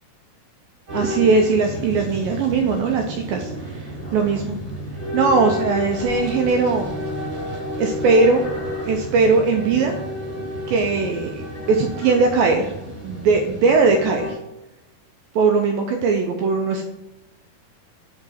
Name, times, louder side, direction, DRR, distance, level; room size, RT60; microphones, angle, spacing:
sound 1, 0.9-14.3, equal, 40° right, 2.0 m, -31 dB
voice 1, 0.9-4.6 5.1-7.0 7.8-8.5 8.8-10.0 10.7-11.3 11.7-12.7 13.0-14.4 15.3-16.8, right 4 dB, 85° right, 3 dB, 2.0 m, -19 dB
sound 2, 3.4-9.9 10.3-11.1 11.5-13.2, left 3 dB, 50° left, 1.0 m, -42 dB
5.9 x 4.8 x 4.2 m, 0.98 s
omnidirectional pair, 4.7 m